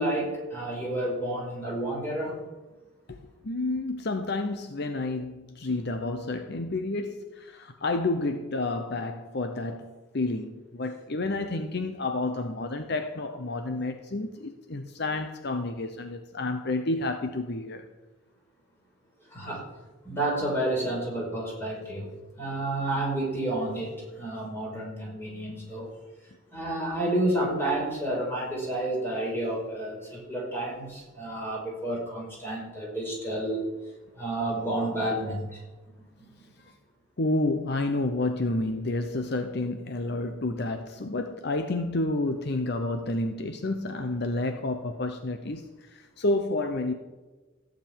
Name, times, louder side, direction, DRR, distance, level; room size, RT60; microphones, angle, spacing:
voice 1, 0.0-2.4 19.3-19.7 20.0-25.9 26.5-33.6 34.1-35.6, right 1 dB, 10° left, -3 dB, 4.9 m, -30 dB
voice 2, 3.1-17.8 37.2-46.9, left 2 dB, 60° left, 6 dB, 0.9 m, -30 dB
15.0 x 5.3 x 8.9 m, 1.2 s
head